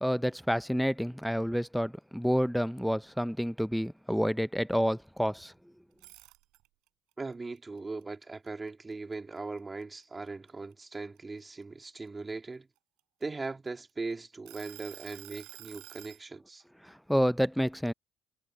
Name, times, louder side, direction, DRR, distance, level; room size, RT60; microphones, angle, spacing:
voice 1, 0.0-5.5 16.8-17.9, equal, ahead, 0.7 m, -29 dB
sound 1, 5.9-6.9 7.3-9.1 9.6-9.8 10.3-12.1 12.8-13.9 14.5-16.2, right 20 dB, 85° right, 4.0 m, -50 dB
voice 2, 7.2-12.7 13.2-16.6, right 3 dB, 25° right, 3.2 m, -39 dB
supercardioid pair, 85°, 0 cm